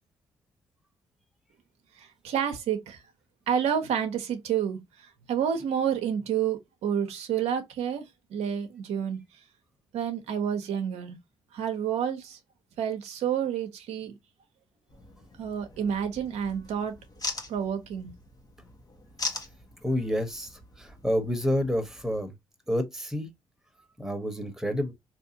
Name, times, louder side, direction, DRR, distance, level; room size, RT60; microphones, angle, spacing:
voice 1, 2.0-3.0 3.5-4.8 5.3-8.1 8.3-9.2 9.9-11.2 11.5-12.4 12.8-14.1 15.4-16.9 17.5-18.1, right 8 dB, 75° right, 0.7 m, -29 dB
sound 1, 14.9-22.3, left 3 dB, 35° left, 1.0 m, -41 dB
voice 2, 19.8-22.3 22.7-23.3 24.0-24.9, equal, 5° right, 1.1 m, -29 dB
3.5 x 2.8 x 2.7 m
supercardioid pair, 50°, 11 cm